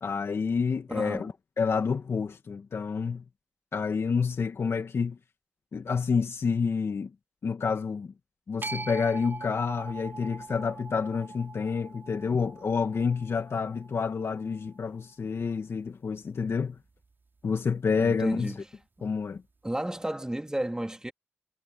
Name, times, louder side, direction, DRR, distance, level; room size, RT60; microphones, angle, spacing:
voice 1, 0.0-3.2 3.7-5.2 5.7-7.1 7.4-8.1 8.5-16.8 17.4-18.5 19.0-19.4, left 5 dB, 60° left, 2.2 m, -29 dB
voice 2, 0.9-1.3 18.0-18.6 19.6-21.1, right 1 dB, 15° right, 3.4 m, -32 dB
sound 1, 8.6-14.8, right 3 dB, 45° right, 5.1 m, -42 dB
supercardioid pair, 40°, 5 cm